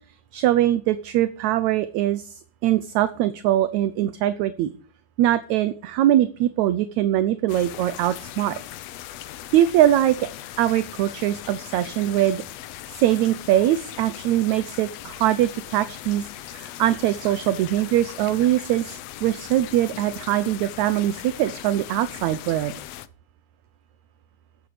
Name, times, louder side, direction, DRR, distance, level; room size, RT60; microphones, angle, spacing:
voice 1, 0.3-2.4 2.6-4.7 5.2-8.6 9.5-10.3 10.6-12.4 12.9-22.7, right 13 dB, 75° right, 13 dB, 1.9 m, -22 dB
sound 1, 7.5-23.1, left 13 dB, 70° left, 1.7 m, -39 dB
14.5 x 10.0 x 5.0 m, 0.43 s
omnidirectional pair, 3.6 m